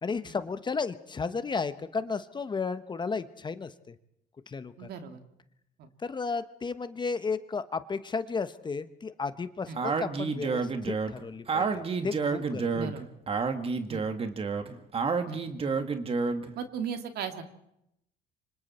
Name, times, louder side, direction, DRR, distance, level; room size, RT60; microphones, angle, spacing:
voice 1, 0.0-3.9 4.5-4.9 6.0-12.8, left 4 dB, 25° left, 11 dB, 1.1 m, -33 dB
voice 2, 4.8-5.2 5.8-5.9 9.7-9.8 12.7-13.1 13.9-14.1 15.3-15.4 16.6-17.4, right 6 dB, 70° right, 6 dB, 2.6 m, -37 dB
Speech, 9.8-16.5, right 4 dB, 35° right, 1.9 m, -30 dB
27.5 x 25.5 x 4.4 m, 0.79 s
cardioid pair, 110°, 17 cm